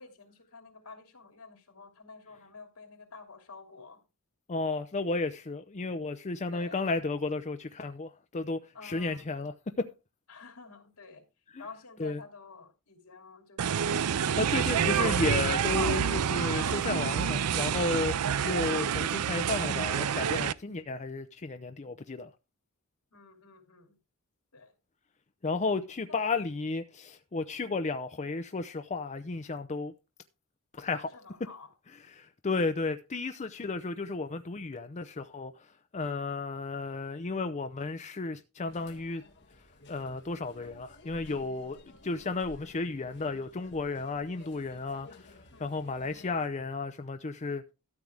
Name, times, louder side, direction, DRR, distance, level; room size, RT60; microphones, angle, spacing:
voice 1, 0.0-4.0 6.5-6.8 8.7-9.3 10.3-11.2 11.6-15.1 16.6-17.2 23.1-23.9 24.5-24.7 25.6-25.8 26.1-26.2 31.1-31.7 45.5-45.7, left 4 dB, 85° left, 2.9 m, -50 dB
voice 2, 4.5-9.9 12.0-12.2 14.4-22.3 25.4-29.9 30.7-31.1 32.1-35.5 35.9-39.2 39.9-41.8 42.0-47.7, left 3 dB, 35° left, 0.6 m, -33 dB
sound 1, 13.6-20.5, right 8 dB, 90° right, 0.5 m, -28 dB
sound 2, 38.7-46.5, left 2 dB, 55° left, 2.2 m, -54 dB
13.0 x 7.5 x 3.4 m
head